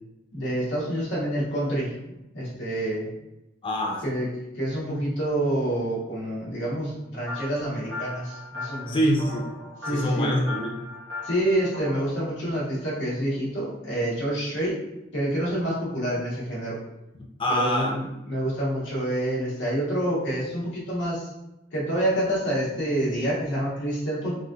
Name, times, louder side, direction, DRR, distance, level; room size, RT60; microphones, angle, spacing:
voice 1, 0.3-1.9 2.3-3.1 4.0-4.3 4.5-9.0 9.8-10.3 11.2-14.8 15.1-16.8 17.5-21.3 21.7-24.4, right 1 dB, 65° left, -6 dB, 1.1 m, -27 dB
voice 2, 3.6-4.1 8.9-9.4 9.9-10.8 17.4-17.9, equal, 25° left, -1 dB, 0.4 m, -25 dB
sound 1, 7.3-12.0, left 2 dB, 90° right, 1.1 m, -38 dB
3.5 x 2.6 x 2.3 m, 0.93 s
head